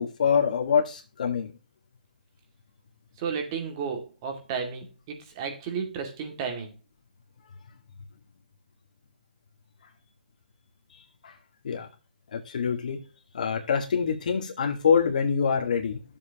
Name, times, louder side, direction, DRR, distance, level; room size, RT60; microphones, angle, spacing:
voice 1, 0.0-1.5 10.9-11.4 11.6-11.9 12.3-13.0 13.3-16.0, left 6 dB, 55° left, 1 dB, 1.8 m, -25 dB
voice 2, 3.2-6.7, right 6 dB, 25° right, 4 dB, 2.2 m, -33 dB
12.5 x 7.4 x 2.9 m, 0.31 s
hypercardioid pair, 165°, 5 cm